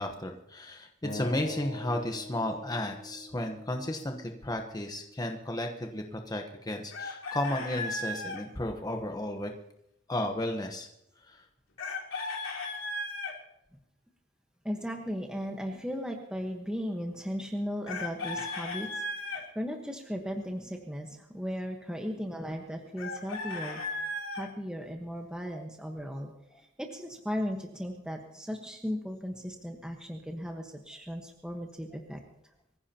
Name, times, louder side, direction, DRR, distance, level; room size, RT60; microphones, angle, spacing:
voice 1, 0.0-9.5 10.1-10.9 11.3-11.4 25.5-25.6, left 1 dB, 20° left, 4 dB, 1.0 m, -33 dB
Acoustic guitar, 1.0-4.3, left 1 dB, 40° left, 2.9 m, -43 dB
Chicken rooster, 6.9-8.4 11.8-13.3 17.9-19.4 23.0-24.5, left 2 dB, 80° left, 3.3 m, -36 dB
voice 2, 14.6-24.1 24.3-26.3 26.6-32.2, equal, 5° right, 2 dB, 1.2 m, -36 dB
24.0 x 15.5 x 2.9 m, 0.81 s
head